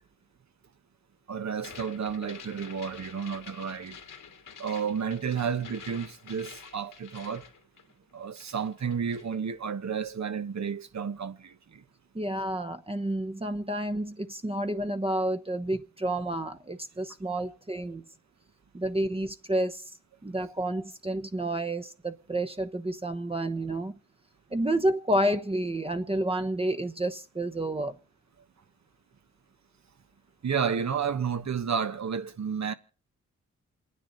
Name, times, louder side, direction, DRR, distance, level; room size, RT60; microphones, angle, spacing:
voice 1, 1.3-4.0 4.6-7.4 8.1-11.8 30.4-32.7, right 6 dB, 60° right, 1.3 m, -31 dB
sound 1, 1.5-8.1 8.4-9.3, left 6 dB, 75° left, 2.2 m, -48 dB
voice 2, 12.1-18.1 18.7-19.9 20.2-24.0 24.5-28.0, right 1 dB, 20° right, 1.0 m, -30 dB
28.0 x 10.0 x 4.1 m
cardioid pair, 55°, 32 cm